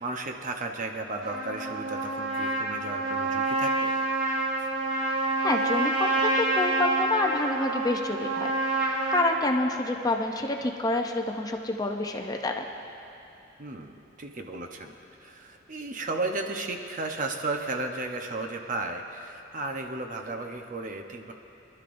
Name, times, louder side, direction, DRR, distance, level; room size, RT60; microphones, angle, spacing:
voice 1, 0.0-3.9 13.6-13.9 14.2-14.9 15.2-21.3, right 2 dB, 45° right, 4 dB, 0.8 m, -34 dB
Trumpet, 1.2-9.3, right 2 dB, 80° right, 2.7 m, -27 dB
voice 2, 5.2-12.7, left 2 dB, 20° left, 3 dB, 0.6 m, -28 dB
23.0 x 12.0 x 2.6 m, 2.7 s
head